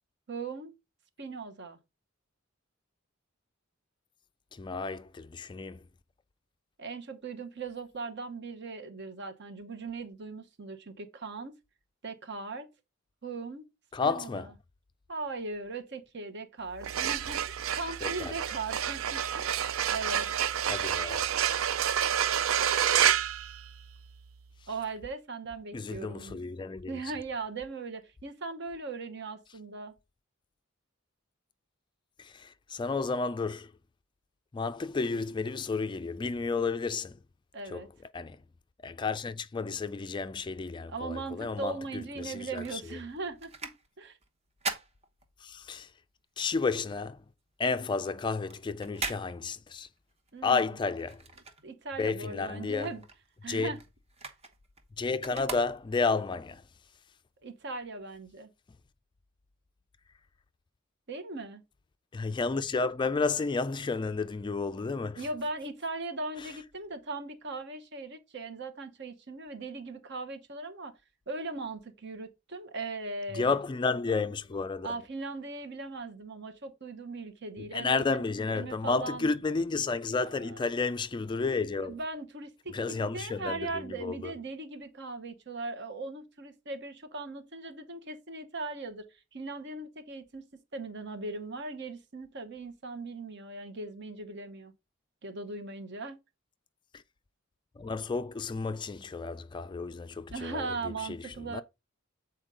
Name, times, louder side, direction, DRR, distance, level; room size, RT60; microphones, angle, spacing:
voice 1, 0.3-0.7 1.2-1.8 6.8-11.5 12.0-12.7 13.2-13.7 14.0-14.5 15.1-20.3 24.7-26.4 26.9-29.9 37.5-37.9 40.9-43.7 44.0-44.2 50.3-50.7 51.6-53.0 53.4-53.8 57.4-58.5 61.1-61.6 65.2-71.0 71.3-73.6 74.8-78.3 78.5-79.3 80.3-80.7 81.8-82.7 83.1-94.7 95.2-96.2 100.3-101.6, right 3 dB, 60° right, 1.1 m, -39 dB
voice 2, 4.5-5.8 13.9-14.5 18.0-18.3 20.7-21.3 25.7-26.9 32.2-33.7 34.5-37.2 37.7-37.9 38.1-38.4 38.8-43.0 45.4-45.9 46.4-47.2 47.6-49.9 50.4-51.2 52.0-52.9 53.5-53.7 55.0-56.6 62.1-65.2 73.3-75.0 77.7-82.0 82.7-84.3 97.8-101.6, left 4 dB, 25° left, 0.3 m, -32 dB
sound 1, 16.7-24.2, right 9 dB, 85° right, 0.5 m, -29 dB
sound 2, 42.1-45.8 46.2-52.1 52.5-56.2 56.8-56.9, right 4 dB, 30° right, 1.0 m, -42 dB
8.0 x 4.4 x 3.8 m
head